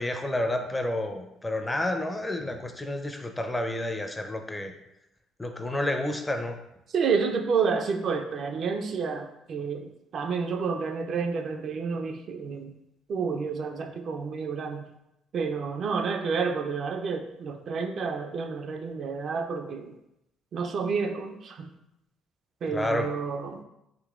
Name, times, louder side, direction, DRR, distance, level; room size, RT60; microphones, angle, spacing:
voice 1, 0.0-4.7 5.4-6.6 22.7-23.1, left 1 dB, 15° left, 5 dB, 0.4 m, -30 dB
voice 2, 6.9-12.7 13.1-14.8 15.3-19.9 20.5-21.7 22.6-23.6, right 5 dB, 55° right, 5 dB, 0.3 m, -30 dB
3.7 x 2.7 x 2.4 m, 0.86 s
supercardioid pair, 65°, 0 cm